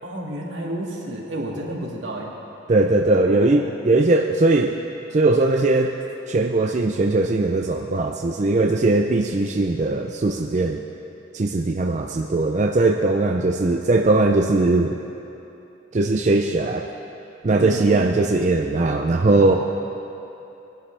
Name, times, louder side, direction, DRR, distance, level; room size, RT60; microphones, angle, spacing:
voice 1, 0.0-2.3 3.1-3.7 17.6-18.2 19.4-19.6, right 1 dB, 75° right, -2 dB, 2.1 m, -31 dB
voice 2, 2.7-4.8 5.1-5.9 6.3-10.8 11.3-15.0 15.9-16.9 17.4-19.6, right 2 dB, 40° right, 3 dB, 0.4 m, -19 dB
21.0 x 11.5 x 3.4 m, 2.9 s
head